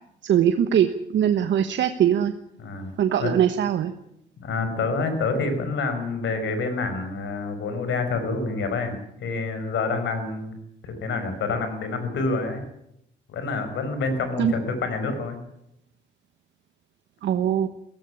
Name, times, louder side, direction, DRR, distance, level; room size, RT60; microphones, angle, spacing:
voice 1, 0.2-2.3 3.0-3.9 14.4-14.5 17.2-17.7, right 9 dB, 70° right, 8 dB, 1.2 m, -21 dB
voice 2, 2.6-2.9 3.2-3.3 4.4-8.9 9.2-10.5 10.8-12.6 13.3-15.4, left 3 dB, 70° left, 8 dB, 5.2 m, -27 dB
17.0 x 16.0 x 9.9 m, 0.79 s
cardioid pair, 90°, 20 cm